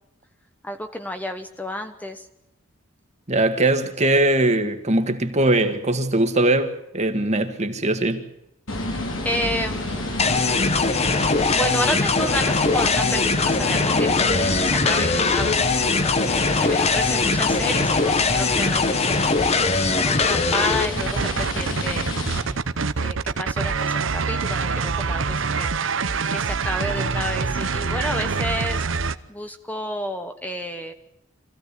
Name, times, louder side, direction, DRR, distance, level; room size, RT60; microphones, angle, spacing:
voice 1, 0.6-2.3 9.2-10.1 11.5-15.7 16.0-19.3 20.0-22.1 23.0-25.7 26.3-28.8 29.3-30.9, equal, 10° left, 1.1 m, -30 dB
voice 2, 3.3-8.2, right 2 dB, 35° right, 1.9 m, -21 dB
sound 1, 8.7-22.4, left 1 dB, 80° left, 4.6 m, -30 dB
sound 2, 10.2-20.9, left 4 dB, 35° left, 1.1 m, -21 dB
sound 3, 21.0-29.1, right 4 dB, 70° right, 0.8 m, -25 dB
25.5 x 15.5 x 8.4 m
head